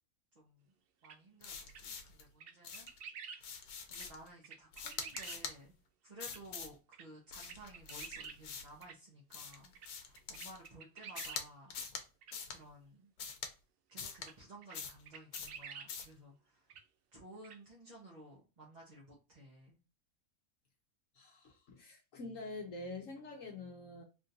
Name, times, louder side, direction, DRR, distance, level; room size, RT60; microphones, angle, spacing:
voice 1, 0.3-0.7 1.0-2.9 3.3-5.7 6.0-11.8 12.5-13.1 13.9-16.7 17.1-19.8, right 1 dB, 35° right, 0.8 m, -56 dB
sound 1, 1.0-1.2 1.7-1.8 2.4-3.4 3.9-4.1 4.4-5.4 6.3-6.4 6.9-7.0 7.4-8.4 8.8-8.9 9.5-9.9 10.2-11.4 12.2-12.3 14.2-14.3 14.6-14.8 15.0-15.9 16.7-16.8 17.4-17.6, right 6 dB, 70° right, 0.5 m, -49 dB
sound 2, 1.4-2.2 2.6-3.0 3.4-4.3 4.7-5.6 6.2-6.8 7.3-8.8 9.3-10.7 11.2-11.4 11.7-12.0 12.3-12.6 13.2-13.5 14.0-14.3 14.7-15.0 15.3-15.6 15.9-16.1, left 6 dB, 85° left, 1.2 m, -44 dB
voice 2, 21.1-24.0, left 2 dB, 65° left, 1.1 m, -46 dB
3.6 x 2.5 x 2.6 m
omnidirectional pair, 1.5 m